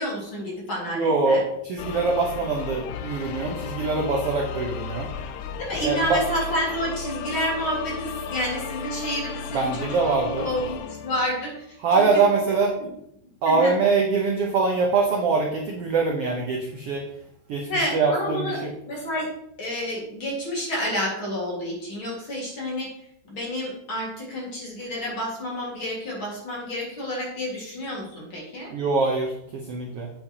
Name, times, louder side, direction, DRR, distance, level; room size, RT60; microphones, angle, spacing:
voice 1, 0.0-1.4 5.6-12.1 12.5-12.9 13.5-13.7 17.7-19.3 19.6-22.9 23.3-28.7, equal, 40° left, -3 dB, 2.5 m, -30 dB
voice 2, 0.9-5.1 5.8-6.2 9.5-10.5 11.8-12.8 13.4-17.1 17.5-18.7 28.7-30.1, right 4 dB, 80° right, 1 dB, 1.3 m, -23 dB
sound 1, 1.8-11.7, left 6 dB, 85° left, 1.6 m, -34 dB
8.3 x 8.0 x 3.0 m, 0.75 s
omnidirectional pair, 4.0 m